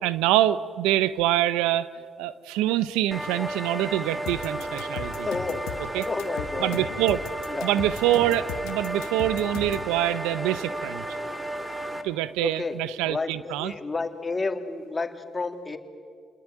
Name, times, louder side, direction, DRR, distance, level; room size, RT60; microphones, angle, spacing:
voice 1, 0.0-1.9 2.2-5.3 5.9-6.1 6.6-7.2 7.6-11.1 12.0-13.7, right 13 dB, 85° right, 16 dB, 0.8 m, -25 dB
sound 1, 3.1-12.0, right 1 dB, 10° right, 2.7 m, -33 dB
sound 2, 4.3-9.9, left 9 dB, 85° left, 1.5 m, -37 dB
voice 2, 5.2-5.6 6.1-6.8 7.5-7.7 12.4-12.8 13.1-15.8, left 3 dB, 30° left, 6 dB, 3.0 m, -30 dB
29.5 x 21.0 x 9.4 m, 2.1 s
supercardioid pair, 55°, 0 cm